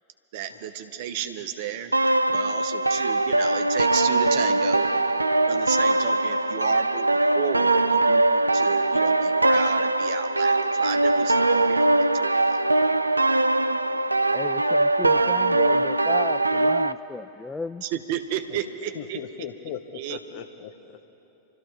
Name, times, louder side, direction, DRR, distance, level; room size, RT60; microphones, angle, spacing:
voice 1, 0.3-1.9 2.3-4.9 5.5-12.6 17.8-19.2 19.9-20.2, right 9 dB, 50° right, 8 dB, 1.0 m, -33 dB
sound 1, 1.9-16.9, right 2 dB, 85° right, 0.3 m, -21 dB
voice 2, 14.3-17.8, left 4 dB, 10° left, 11 dB, 0.3 m, -35 dB
voice 3, 18.9-21.1, left 9 dB, 50° left, 7 dB, 0.9 m, -39 dB
27.5 x 13.5 x 3.6 m, 3.0 s
figure-of-eight pair, 90°, 0 cm